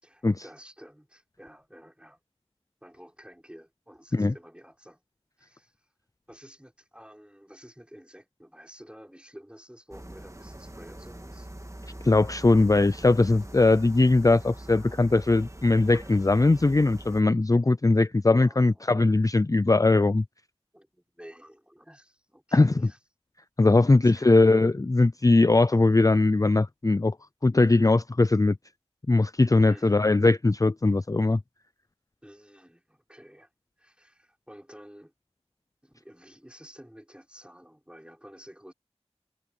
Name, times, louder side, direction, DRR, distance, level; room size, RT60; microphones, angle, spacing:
voice 1, 0.0-2.2 2.8-5.0 5.4-5.9 6.3-11.5 18.4-18.9 20.7-23.0 23.8-24.5 29.7-30.1 32.2-33.5 33.8-35.1 35.8-38.7, equal, 10° right, 5.7 m, -51 dB
sound 1, 9.9-17.2, right 1 dB, 30° right, 1.9 m, -43 dB
voice 2, 12.0-20.2 22.5-22.7 23.6-27.2 27.4-28.6 29.1-31.4, left 2 dB, 30° left, 0.4 m, -20 dB
wide cardioid pair, 40°, 11 cm